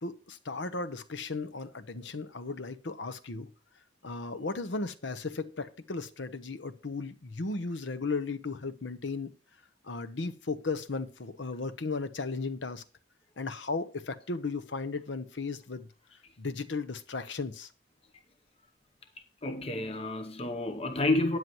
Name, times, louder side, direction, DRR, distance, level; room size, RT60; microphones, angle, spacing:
voice 1, 0.0-3.5 4.0-9.3 9.8-12.8 13.4-15.9 16.4-17.7, left 3 dB, 75° left, 0.9 m, -35 dB
voice 2, 19.4-21.4, left 2 dB, 30° left, 0.8 m, -29 dB
13.0 x 9.5 x 3.0 m
head